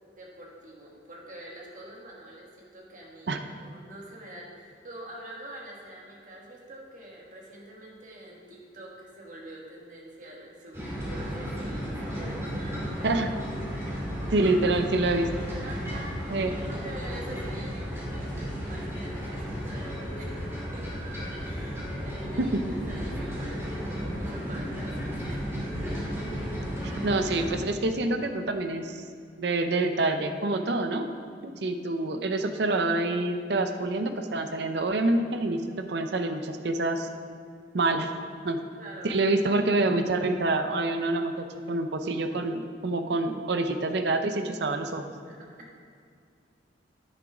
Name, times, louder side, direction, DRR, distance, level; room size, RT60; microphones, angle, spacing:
voice 1, 0.1-13.1 15.6-20.9 21.4-22.6 22.9-25.5 38.5-39.2 45.3-45.7, right 1 dB, 45° right, -2 dB, 1.5 m, -45 dB
sound 1, 10.7-27.5, equal, 15° right, 2.3 m, -34 dB
voice 2, 14.3-15.3 16.3-16.5 22.4-22.6 26.8-29.0 29.4-31.1 31.4-37.1 37.7-38.1 38.4-38.6 39.0-45.0, right 2 dB, 65° right, 7 dB, 0.6 m, -27 dB
10.0 x 6.2 x 4.9 m, 2.3 s
head